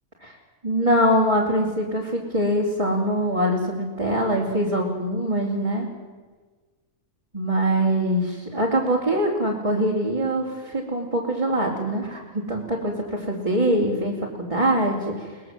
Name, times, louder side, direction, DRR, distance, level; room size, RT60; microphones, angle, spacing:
voice 1, 0.6-5.9 7.3-15.4, right 1 dB, 20° right, -3 dB, 3.3 m, -23 dB
23.0 x 20.5 x 7.6 m, 1.4 s
omnidirectional pair, 1.5 m